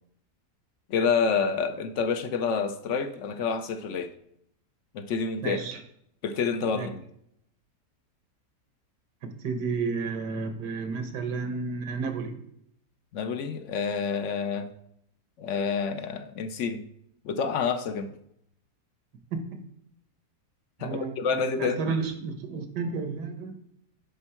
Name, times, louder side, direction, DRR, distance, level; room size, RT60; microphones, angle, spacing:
voice 1, 0.9-4.1 4.9-5.6 6.2-7.0 13.1-14.7 15.4-16.8 17.2-18.1 20.8-21.9, left 5 dB, 60° left, 9 dB, 0.8 m, -28 dB
voice 2, 5.4-5.8 6.7-6.9 9.2-12.4 19.3-19.6 20.8-21.2 21.6-23.6, right 4 dB, 85° right, 7 dB, 1.6 m, -32 dB
10.5 x 4.4 x 4.4 m, 0.75 s
omnidirectional pair, 1.7 m